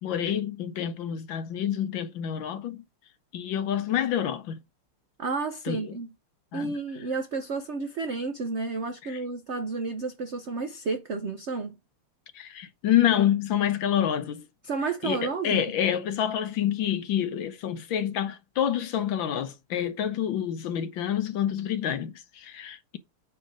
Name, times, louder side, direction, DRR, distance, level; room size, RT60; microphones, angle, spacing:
voice 1, 0.0-2.8 3.3-4.6 5.6-6.0 6.5-6.8 9.0-9.2 12.3-14.5 15.0-23.0, left 10 dB, 70° left, 1.4 m, -28 dB
voice 2, 5.2-6.1 6.5-11.8 14.6-15.6, right 4 dB, 80° right, 0.6 m, -31 dB
9.0 x 3.5 x 6.1 m
omnidirectional pair, 2.4 m